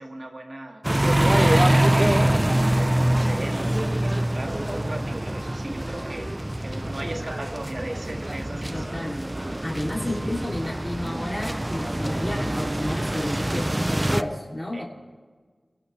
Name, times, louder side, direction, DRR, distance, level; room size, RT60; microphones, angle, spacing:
voice 1, 0.0-9.6 10.0-10.4 14.7-14.8, right 1 dB, 60° right, 3 dB, 1.8 m, -38 dB
sound 1, 0.8-14.2, right 1 dB, 20° right, 0.5 m, -24 dB
voice 2, 8.7-9.2 9.6-14.8, left 1 dB, 15° left, -4 dB, 3.0 m, -31 dB
22.0 x 12.5 x 3.3 m, 1.5 s
wide cardioid pair, 55°, 0 cm